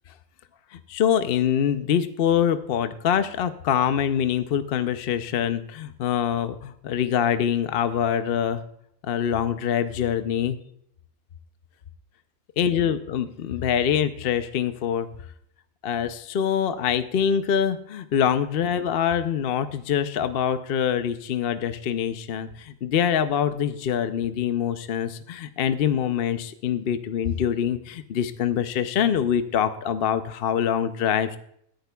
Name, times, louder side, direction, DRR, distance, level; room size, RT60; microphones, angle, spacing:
voice 1, 0.7-8.6 9.0-10.6 12.6-15.1 15.8-31.4, left 8 dB, 55° left, 10 dB, 0.7 m, -24 dB
19.0 x 10.5 x 2.3 m, 0.70 s
omnidirectional pair, 1.4 m